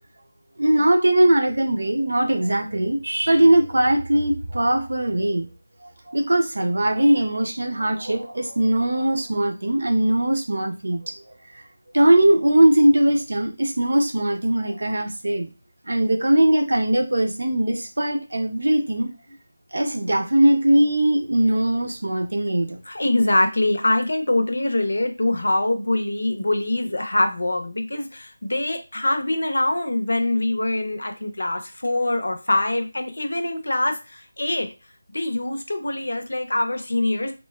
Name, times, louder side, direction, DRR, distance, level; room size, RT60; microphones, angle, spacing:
voice 1, 0.6-5.5 6.1-11.1 11.9-15.5 15.9-19.1 19.7-22.8, right 1 dB, 75° right, 0.6 m, -20 dB
voice 2, 22.9-34.7 35.1-37.3, left 1 dB, 80° left, 0.6 m, -23 dB
3.0 x 2.2 x 2.2 m
figure-of-eight pair, 175°, 0 cm